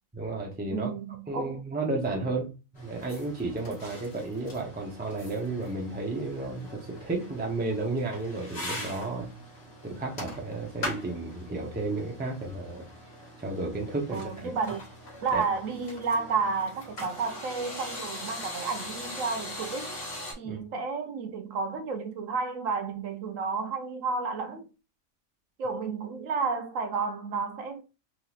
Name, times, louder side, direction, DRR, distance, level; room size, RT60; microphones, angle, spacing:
voice 1, 0.1-0.9 1.3-9.3 9.8-12.9 13.4-14.5 15.3-15.4 20.4-20.6, right 2 dB, 10° right, 0.4 m, -32 dB
voice 2, 0.7-1.6 14.1-14.8 15.2-19.9 20.4-24.7 25.6-27.8, right 4 dB, 70° right, 1.0 m, -31 dB
sound 1, 2.8-20.3, left 1 dB, 50° left, 1.7 m, -42 dB
3.6 x 2.9 x 2.4 m
omnidirectional pair, 1.5 m